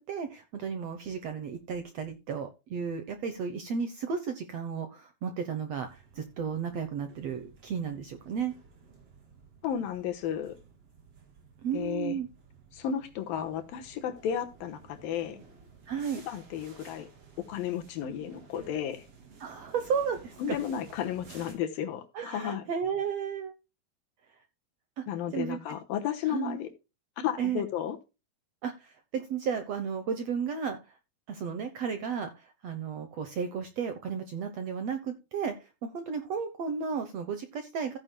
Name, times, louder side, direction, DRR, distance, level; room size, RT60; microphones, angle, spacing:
voice 1, 0.1-8.5 11.6-12.3 15.9-16.2 19.4-20.6 22.1-23.5 25.0-25.1 25.3-25.6 26.3-26.6 27.4-27.7 28.6-31.0 31.3-38.0, right 6 dB, 70° right, 1.5 m, -33 dB
sound 1, 5.8-21.5, right 5 dB, 45° right, 3.6 m, -55 dB
voice 2, 9.6-10.6 11.7-12.2 12.7-15.4 16.3-17.1 17.5-19.1 20.4-22.6 25.1-26.7 27.2-28.0, left 9 dB, 80° left, 2.8 m, -33 dB
15.0 x 9.6 x 2.2 m
omnidirectional pair, 4.2 m